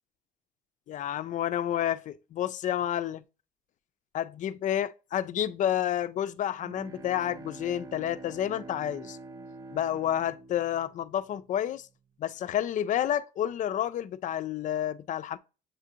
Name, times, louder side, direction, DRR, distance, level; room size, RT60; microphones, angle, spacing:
voice 1, 0.9-3.2 4.1-9.2 9.7-11.9 12.2-15.4, left 11 dB, 50° left, 0.4 m, -30 dB
Bowed string instrument, 6.3-11.7, right 3 dB, 20° right, 0.4 m, -46 dB
7.3 x 2.4 x 2.7 m
cardioid pair, 110°, 17 cm